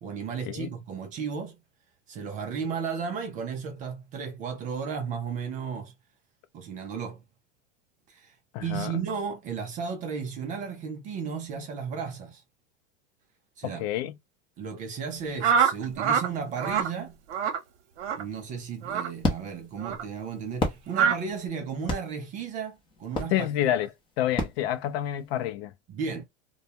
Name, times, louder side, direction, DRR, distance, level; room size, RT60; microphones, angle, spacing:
voice 1, 0.0-1.6 2.1-5.9 6.5-7.2 8.1-8.3 8.6-12.4 13.6-13.8 14.6-17.2 18.1-23.5 25.9-26.2, right 6 dB, 25° right, 0.3 m, -34 dB
voice 2, 8.5-8.9 13.6-14.1 23.3-23.9 24.2-25.7, left 12 dB, 60° left, 0.5 m, -28 dB
sound 1, 15.4-16.3 16.6-16.9 17.3-17.6 18.0-18.2 18.8-19.1 19.8-20.0 20.9-21.2, right 7 dB, 80° right, 0.8 m, -24 dB
sound 2, 18.5-25.4, left 2 dB, 15° left, 0.7 m, -34 dB
2.2 x 2.1 x 2.7 m
supercardioid pair, 135°, 35 cm